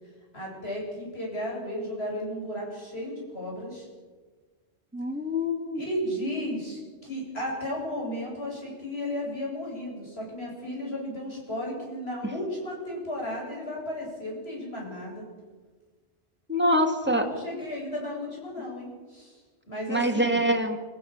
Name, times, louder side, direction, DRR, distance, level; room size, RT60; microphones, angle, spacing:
voice 1, 0.3-3.9 5.8-15.3 17.0-19.4 19.7-20.4, left 1 dB, 65° left, -2 dB, 8.5 m, -34 dB
voice 2, 4.9-5.8 16.5-17.3 19.9-20.8, equal, 10° right, 3 dB, 2.4 m, -25 dB
27.0 x 15.5 x 7.4 m, 1.4 s
omnidirectional pair, 1.2 m